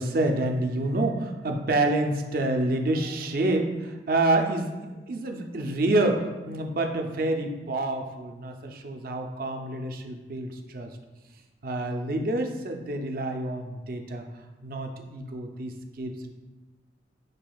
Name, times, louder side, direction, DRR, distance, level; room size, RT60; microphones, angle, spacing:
voice 1, 0.0-11.0 11.6-16.3, right 2 dB, 50° right, 4 dB, 0.5 m, -28 dB
6.7 x 3.3 x 2.3 m, 1.2 s
head